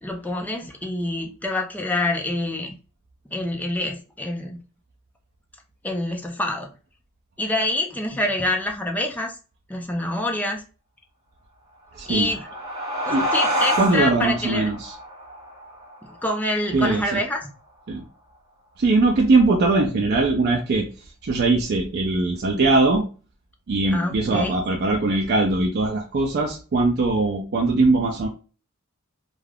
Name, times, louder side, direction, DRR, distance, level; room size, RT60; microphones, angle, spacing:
voice 1, 0.0-2.8 3.3-4.6 5.8-6.7 7.4-9.3 9.7-10.6 12.1-12.5 13.1-14.7 16.2-17.5 23.9-24.5, left 2 dB, 10° left, 1 dB, 0.4 m, -26 dB
sound 1, 12.0-17.1, equal, 20° right, 0.7 m, -28 dB
voice 2, 12.0-12.3 13.1-13.3 13.8-14.9 16.7-17.2 17.9-18.0 18.8-20.9 21.2-23.1 23.7-28.3, right 3 dB, 50° right, 1 dB, 0.4 m, -21 dB
2.4 x 2.3 x 3.3 m, 0.34 s
head